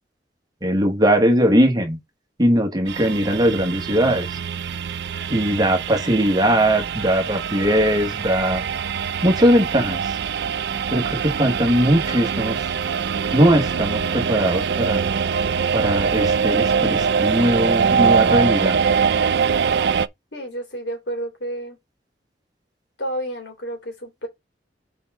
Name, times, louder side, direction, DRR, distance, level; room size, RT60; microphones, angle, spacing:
voice 1, 0.6-2.0 2.4-4.4 5.3-8.6 9.2-10.1 10.9-12.7 13.3-15.0 15.7-18.8, equal, 25° right, 1.4 m, -20 dB
sound 1, 2.9-20.1, right 6 dB, 65° right, 0.4 m, -23 dB
voice 2, 20.3-21.8 23.0-24.3, right 1 dB, 75° left, 3.2 m, -30 dB
6.9 x 4.7 x 3.7 m
head